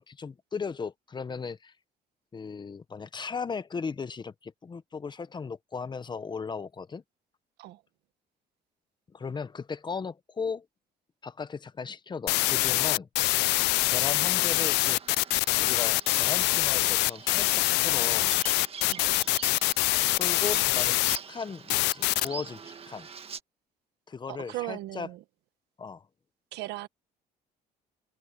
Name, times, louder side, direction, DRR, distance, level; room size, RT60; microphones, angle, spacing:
voice 1, 0.0-1.7 2.3-7.0 9.1-10.7 11.2-13.1 13.9-15.0 15.6-18.3 20.1-23.1 24.1-25.1 25.8-26.0, left 5 dB, 25° left, 1.0 m, -37 dB
sound 1, 12.3-21.2 21.7-22.3, left 21 dB, 85° left, 0.4 m, -24 dB
Bird vocalization bird call bird song, 14.5-23.4, right 6 dB, 35° right, 1.6 m, -44 dB
voice 2, 24.3-25.2 26.5-26.9, right 17 dB, 85° right, 1.5 m, -37 dB
cardioid pair, 110°, 17 cm